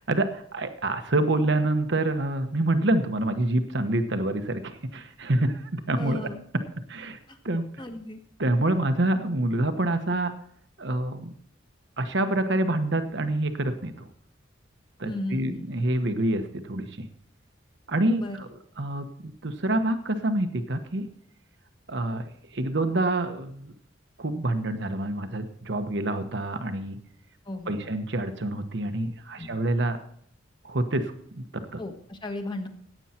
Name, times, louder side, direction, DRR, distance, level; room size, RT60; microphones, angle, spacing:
voice 1, 0.1-6.3 6.9-7.2 7.4-7.7 8.4-10.3 10.8-11.3 12.0-14.1 15.0-17.1 17.9-18.5 18.8-21.1 21.9-22.2 22.5-23.7 24.2-27.0 27.7-30.0 30.6-31.8, right 1 dB, 65° right, 8 dB, 1.1 m, -27 dB
voice 2, 6.0-6.4 7.3-7.4 7.8-8.2 15.0-15.7 18.2-18.4 27.4-27.9 29.4-29.6 31.8-32.7, left 1 dB, 25° left, 5 dB, 1.4 m, -35 dB
15.5 x 9.2 x 4.4 m, 0.64 s
head